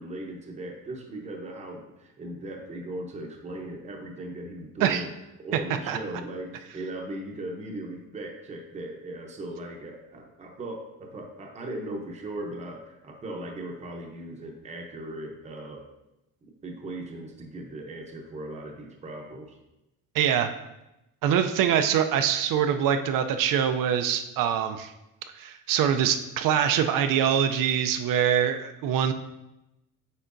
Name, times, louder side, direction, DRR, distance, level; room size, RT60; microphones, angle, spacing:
voice 1, 0.0-5.1 5.4-15.8 16.4-19.6, right 1 dB, 20° right, 1 dB, 0.7 m, -38 dB
voice 2, 20.1-20.5 21.2-24.9 25.4-29.1, right 9 dB, 85° right, 7 dB, 0.5 m, -24 dB
8.3 x 4.5 x 2.6 m, 0.92 s
cardioid pair, 175°, 32 cm